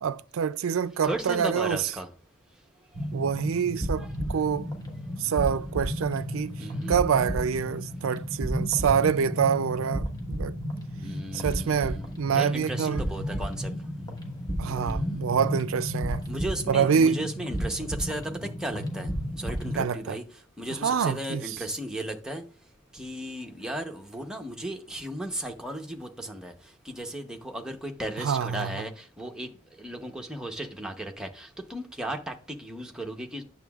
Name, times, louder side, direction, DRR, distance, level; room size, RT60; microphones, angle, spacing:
voice 1, 0.0-1.9 3.1-4.7 5.2-10.6 11.3-13.0 14.6-16.3 16.7-17.2 19.7-20.2 20.7-21.6 28.2-28.8, right 7 dB, 70° right, 0.4 m, -26 dB
voice 2, 1.0-2.1 4.0-4.1 6.6-6.9 11.0-12.1 12.3-13.7 14.6-15.2 16.3-19.1 19.4-20.2 20.6-22.4 22.9-26.5 26.8-29.5 29.8-33.4, right 1 dB, 5° right, 0.8 m, -35 dB
sound 1, 2.9-19.8, equal, 20° left, 1.2 m, -33 dB
9.1 x 6.8 x 2.3 m
head